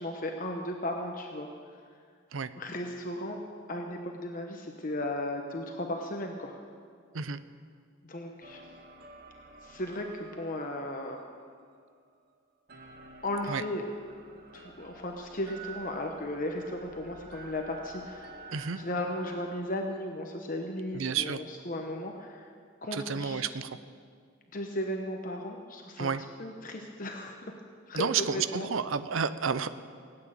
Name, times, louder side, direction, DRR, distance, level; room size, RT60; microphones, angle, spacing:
voice 1, 0.0-1.5 2.6-3.4 3.7-6.6 8.0-8.6 9.6-11.2 13.2-13.8 14.5-18.4 18.8-22.5 22.8-23.4 24.5-26.1 26.4-27.5 27.9-28.7, left 1 dB, 40° left, 3 dB, 1.0 m, -35 dB
sound 1, 8.4-12.3 12.7-19.6, right 3 dB, 50° right, 1.3 m, -50 dB
voice 2, 20.9-21.4 22.9-23.8 26.0-26.2 27.9-29.7, right 6 dB, 80° right, 13 dB, 0.6 m, -31 dB
18.0 x 8.8 x 9.0 m, 2.1 s
head